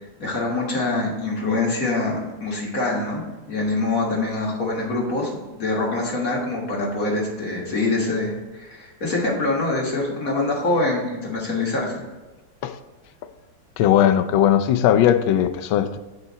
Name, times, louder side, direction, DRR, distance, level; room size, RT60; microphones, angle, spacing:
voice 1, 0.2-12.0, left 2 dB, 45° left, -2 dB, 1.9 m, -25 dB
voice 2, 13.8-16.0, left 10 dB, 90° left, 10 dB, 1.4 m, -18 dB
8.0 x 5.0 x 4.1 m, 1.2 s
omnidirectional pair, 2.1 m